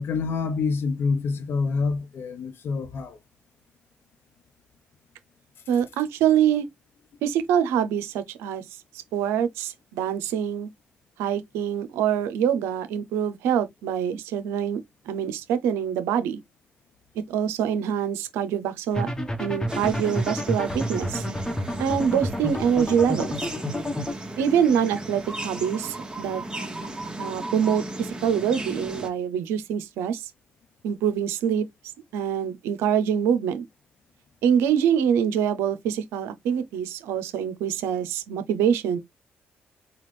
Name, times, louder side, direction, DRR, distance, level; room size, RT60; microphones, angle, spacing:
voice 1, 0.0-3.2, left 4 dB, 60° left, 0.8 m, -27 dB
voice 2, 5.7-6.7 7.2-8.6 9.1-10.7 11.2-14.8 15.1-16.4 17.3-19.1 19.4-21.2 21.8-23.3 24.4-26.4 27.2-30.3 30.8-31.7 32.1-33.6 34.4-39.0, right 8 dB, 85° right, 0.6 m, -25 dB
sound 1, 18.9-24.1, equal, 15° left, 1.1 m, -30 dB
sound 2, 19.7-29.1, right 1 dB, 20° right, 1.3 m, -36 dB
4.1 x 2.3 x 3.1 m
supercardioid pair, 50°, 4 cm